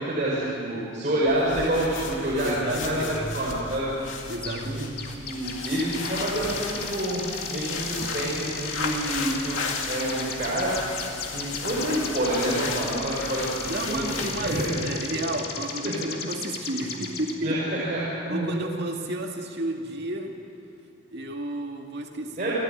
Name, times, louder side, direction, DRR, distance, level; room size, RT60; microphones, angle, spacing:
voice 1, 0.0-3.9 4.5-4.8 5.2-9.6 9.9-10.8 11.3-14.0 14.4-14.7 15.8-15.9 17.4-18.7 22.4-22.6, right 1 dB, 40° right, -7 dB, 5.0 m, -28 dB
sound 1, 1.3-14.8, left 4 dB, 75° left, 2.5 m, -35 dB
voice 2, 2.4-3.3 4.3-5.0 13.7-17.6 18.3-20.4 21.1-22.5, right 1 dB, 55° right, 2 dB, 2.1 m, -32 dB
sound 2, 4.4-4.7 5.0-17.3, left 5 dB, 50° left, 2.4 m, -36 dB
28.5 x 14.0 x 9.3 m, 2.6 s
head